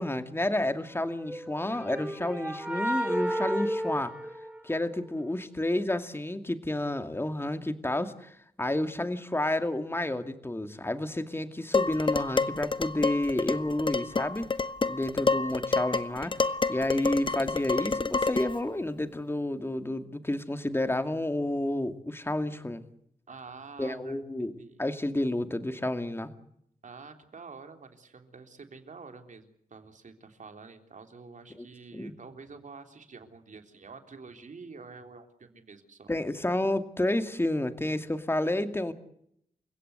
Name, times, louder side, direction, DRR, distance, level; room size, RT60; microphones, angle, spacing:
voice 1, 0.0-4.1 4.6-14.5 14.9-22.8 23.8-24.5 24.8-26.3 31.6-31.7 31.9-32.1 36.1-38.9, left 1 dB, 15° left, 9 dB, 2.4 m, -30 dB
sound 1, 1.2-5.1, equal, 10° right, 2.6 m, -32 dB
Dishes pots and pans, 11.7-18.6, left 4 dB, 35° left, 0.9 m, -29 dB
voice 2, 23.3-24.8 26.8-36.1, right 4 dB, 60° right, 6 dB, 3.5 m, -48 dB
29.0 x 16.5 x 8.1 m, 0.72 s
cardioid pair, 75°, 15 cm